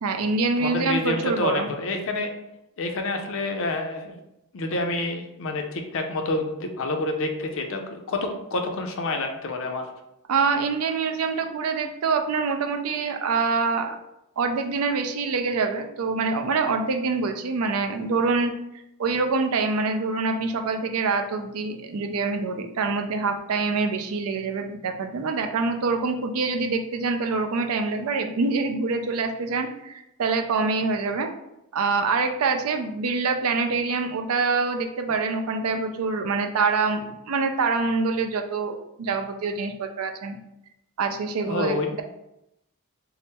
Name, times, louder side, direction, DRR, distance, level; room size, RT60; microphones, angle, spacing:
voice 1, 0.0-1.7 10.3-14.0 14.4-18.5 19.0-31.3 31.7-40.4 41.0-42.0, right 4 dB, 70° right, 5 dB, 0.4 m, -25 dB
voice 2, 0.6-2.3 2.8-4.2 4.5-9.8 41.5-41.9, left 2 dB, 60° left, 4 dB, 0.5 m, -28 dB
3.6 x 2.0 x 4.2 m, 0.86 s
head